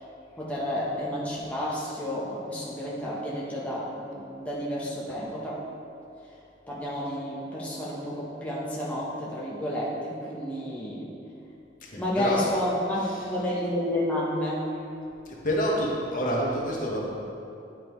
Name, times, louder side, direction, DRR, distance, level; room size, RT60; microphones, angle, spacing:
voice 1, 0.4-5.6 6.7-11.1 12.0-14.7, left 1 dB, 10° left, -7 dB, 0.9 m, -31 dB
voice 2, 11.8-12.4 12.9-13.4 15.4-17.1, equal, 45° left, -3 dB, 1.1 m, -28 dB
10.5 x 5.2 x 3.1 m, 2.7 s
head